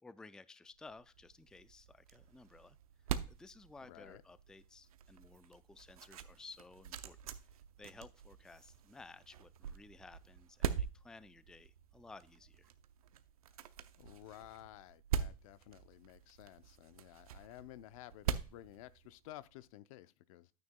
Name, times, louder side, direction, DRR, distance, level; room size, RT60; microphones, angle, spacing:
voice 1, 0.0-2.8 3.3-7.2 7.8-12.7, left 3 dB, 5° left, 0.3 m, -56 dB
sound 1, 0.8-19.5, right 8 dB, 90° right, 0.7 m, -44 dB
voice 2, 3.9-4.2 13.5-13.6 14.0-20.5, left 15 dB, 70° left, 0.6 m, -54 dB
9.6 x 9.3 x 2.2 m
hypercardioid pair, 105°, 18 cm